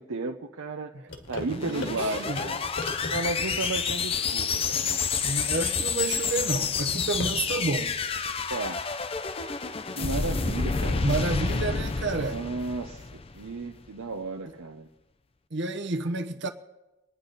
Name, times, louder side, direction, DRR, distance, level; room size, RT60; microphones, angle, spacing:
voice 1, 0.0-2.6 3.1-5.0 8.5-8.8 10.0-11.0 12.1-13.0 13.3-14.9, right 3 dB, 85° right, 0.8 m, -33 dB
sound 1, 1.1-7.7, left 2 dB, 60° left, 1.8 m, -40 dB
sound 2, 1.3-13.6, left 5 dB, 25° left, 0.5 m, -29 dB
voice 2, 1.5-2.4 5.2-8.0 11.0-12.4 15.5-16.5, right 3 dB, 55° right, 1.0 m, -30 dB
25.0 x 10.0 x 4.0 m
head